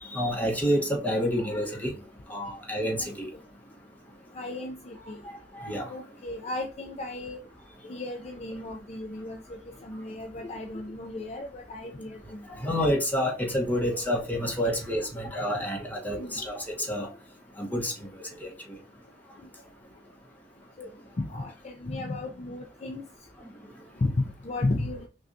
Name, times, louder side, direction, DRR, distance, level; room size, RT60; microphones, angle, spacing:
voice 1, 0.0-1.9 2.3-3.3 5.6-5.9 12.6-17.1 17.6-18.1 18.4-18.8, equal, 10° left, 1.1 m, -28 dB
voice 2, 4.3-5.2 5.9-7.4 7.8-12.4 14.4-14.5 16.2-16.4 20.8-20.9 21.2-23.0 24.0-25.1, left 2 dB, 35° left, 0.5 m, -34 dB
5.9 x 2.4 x 2.6 m
head